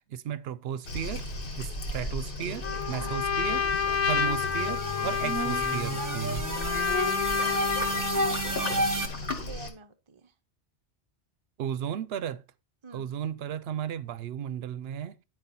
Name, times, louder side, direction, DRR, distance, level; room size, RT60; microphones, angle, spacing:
voice 1, 0.1-1.3 1.6-3.7 4.1-6.5 11.6-12.4 12.9-15.2, right 9 dB, 70° right, 0.8 m, -34 dB
Waves surf, 0.8-9.7, left 2 dB, 55° left, 1.4 m, -36 dB
Trumpet, 2.6-8.3, left 7 dB, 75° left, 1.0 m, -29 dB
sound 1, 2.7-9.1, right 1 dB, 20° right, 1.0 m, -32 dB
voice 2, 7.4-9.1 9.4-10.3 12.8-13.2, right 5 dB, 35° right, 0.5 m, -47 dB
9.7 x 4.8 x 4.0 m
omnidirectional pair, 1.1 m